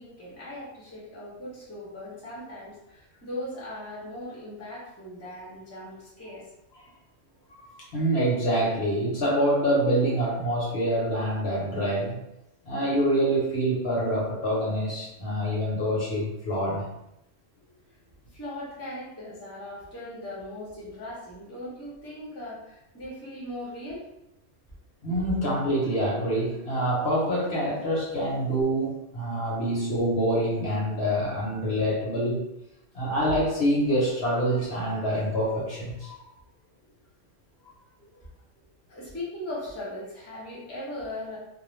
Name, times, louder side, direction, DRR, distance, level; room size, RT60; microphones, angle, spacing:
voice 1, 0.0-6.5 18.3-24.1 38.6-41.4, left 1 dB, 15° left, -6 dB, 0.6 m, -39 dB
voice 2, 7.8-12.2 12.6-16.9 25.0-32.5 32.9-36.2, right 1 dB, 55° left, -5 dB, 1.0 m, -26 dB
2.4 x 2.0 x 3.1 m, 0.87 s
omnidirectional pair, 1.3 m